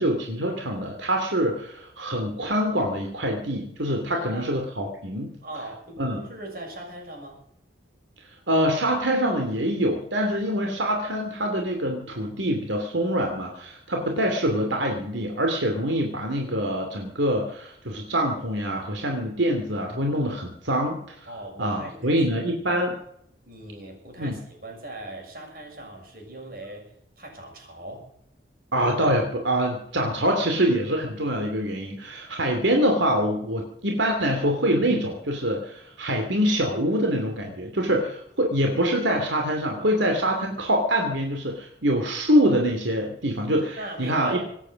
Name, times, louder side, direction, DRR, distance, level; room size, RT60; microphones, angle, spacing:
voice 1, 0.0-5.3 6.0-6.2 8.5-21.1 21.6-22.9 24.2-24.4 28.7-44.4, equal, 85° right, 2 dB, 2.8 m, -25 dB
voice 2, 4.1-4.5 5.4-7.4 21.3-22.3 22.6-23.0 23.4-26.8 27.2-28.1 43.8-44.5, right 1 dB, 50° right, 1 dB, 6.8 m, -39 dB
25.0 x 9.1 x 6.4 m, 0.72 s
head